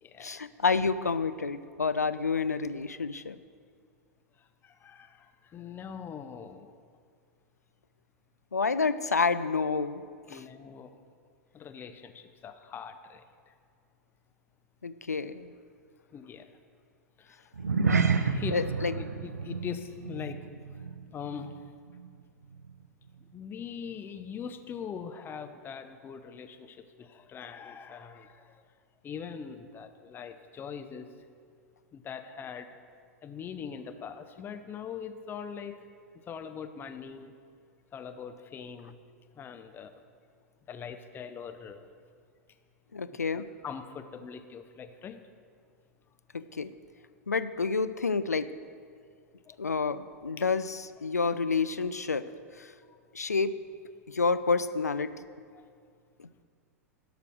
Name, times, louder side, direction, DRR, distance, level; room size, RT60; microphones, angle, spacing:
voice 1, 0.2-3.4 8.5-10.0 10.3-10.4 14.8-15.5 18.5-18.9 42.9-43.5 46.3-46.7 47.3-48.5 49.6-52.3 52.6-52.7 53.1-53.5 54.1-55.1 56.2-56.3, left 4 dB, 90° left, 13 dB, 0.4 m, -29 dB
voice 2, 4.6-5.2 5.5-6.7 10.3-10.9 11.5-13.2 16.1-16.5 17.3-17.4 18.1-18.6 19.0-20.4 21.1-21.5 23.3-28.4 29.0-31.1 31.9-32.7 33.2-35.8 36.3-37.3 37.9-39.0 39.4-39.9 40.7-41.8 43.3-45.2 49.5-49.6, left 7 dB, 25° left, 8 dB, 0.7 m, -42 dB
sound 1, 17.5-22.2 22.4-22.7 23.2-23.3, right 5 dB, 85° right, 0.5 m, -30 dB
12.5 x 5.0 x 6.3 m, 2.2 s
figure-of-eight pair, 95°, 8 cm